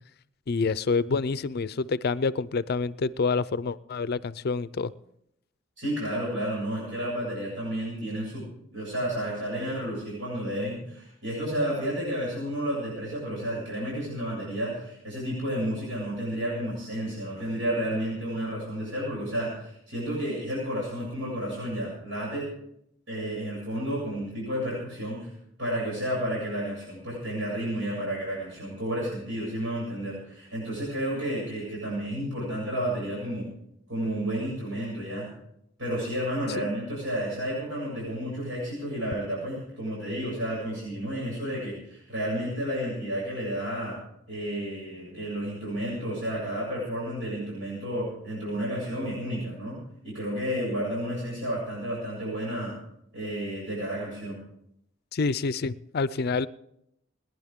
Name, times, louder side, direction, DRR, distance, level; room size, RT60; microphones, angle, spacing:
voice 1, 0.5-4.9 36.6-36.7 55.1-56.5, left 4 dB, 55° left, 16 dB, 0.5 m, -27 dB
voice 2, 5.8-22.5 23.1-25.3 25.6-33.4 33.9-35.3 35.8-44.0 44.3-52.7 53.1-54.4, equal, 75° right, -5 dB, 7.4 m, -31 dB
29.0 x 11.0 x 3.7 m, 0.77 s
head